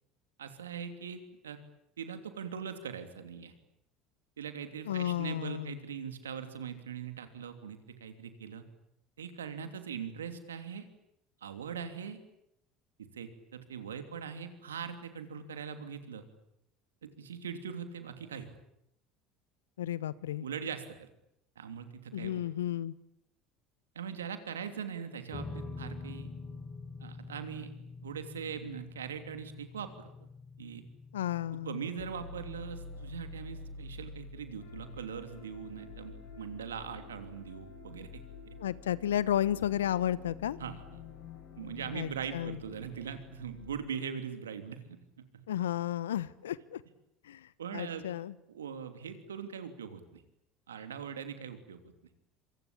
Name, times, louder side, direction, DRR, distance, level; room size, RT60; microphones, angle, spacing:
voice 1, 0.4-1.6 2.0-3.5 4.4-8.7 9.2-10.9 11.4-12.2 13.0-16.3 17.0-18.6 20.4-21.1 21.6-22.4 23.9-26.3 27.0-27.7 28.0-30.1 30.6-30.8 31.6-38.6 40.6-41.0 41.6-45.4 47.6-48.1 48.5-50.2 50.7-51.8, right 7 dB, 90° right, 9 dB, 3.0 m, -41 dB
voice 2, 4.9-5.7 19.8-20.4 22.1-22.9 31.1-31.8 38.6-40.6 41.9-42.6 45.5-46.8 47.3-47.4 47.7-48.3, left 11 dB, 85° left, 19 dB, 1.0 m, -32 dB
sound 1, 25.3-37.8, left 4 dB, 35° left, 4.9 m, -48 dB
sound 2, 32.0-43.8, left 4 dB, 70° left, 6.0 m, -48 dB
26.5 x 24.5 x 8.8 m, 0.78 s
hypercardioid pair, 75°, 0 cm